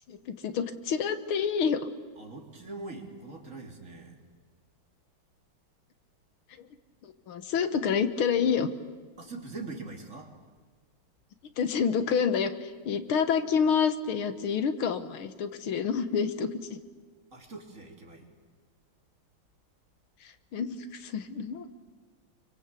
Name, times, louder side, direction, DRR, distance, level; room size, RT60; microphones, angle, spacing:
voice 1, 0.1-1.9 6.6-6.7 7.0-8.7 11.6-16.8 20.2-21.7, left 6 dB, 90° left, 11 dB, 2.1 m, -28 dB
voice 2, 2.2-4.2 9.2-10.3 17.3-18.3, right 3 dB, 35° right, 2 dB, 3.4 m, -42 dB
28.5 x 24.0 x 8.4 m, 1.4 s
omnidirectional pair, 2.2 m